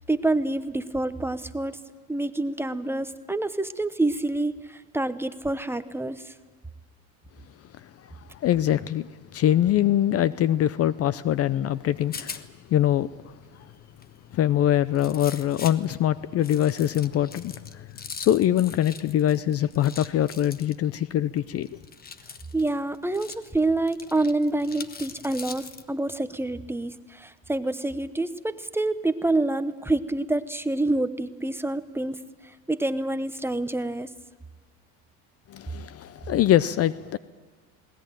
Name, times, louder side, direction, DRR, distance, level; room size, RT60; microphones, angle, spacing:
voice 1, 0.1-1.8 2.1-6.3 22.5-32.2 32.7-34.1, right 2 dB, 5° right, 0.9 m, -27 dB
voice 2, 8.3-12.4 12.7-13.4 14.3-17.9 18.2-21.7 35.5-37.2, left 11 dB, 40° left, 0.6 m, -23 dB
Rattle, 11.7-25.9, left 5 dB, 25° left, 1.1 m, -44 dB
20.5 x 19.0 x 9.1 m
supercardioid pair, 110°, 37 cm